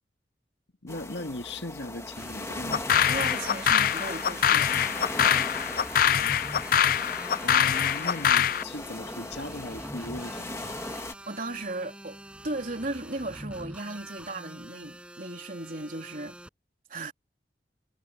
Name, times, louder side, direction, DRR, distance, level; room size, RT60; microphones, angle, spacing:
voice 1, 0.8-2.9 7.4-10.8, left 2 dB, 75° left, 2.0 m, -38 dB
sound 1, 0.9-11.1, left 2 dB, 15° left, 1.8 m, -38 dB
sound 2, 2.2-16.5, right 1 dB, 5° right, 6.2 m, -45 dB
sound 3, 2.7-8.6, left 9 dB, 50° left, 0.4 m, -24 dB
voice 2, 3.0-4.7 11.3-12.2 12.4-16.4 16.9-17.1, right 2 dB, 50° right, 3.4 m, -36 dB
head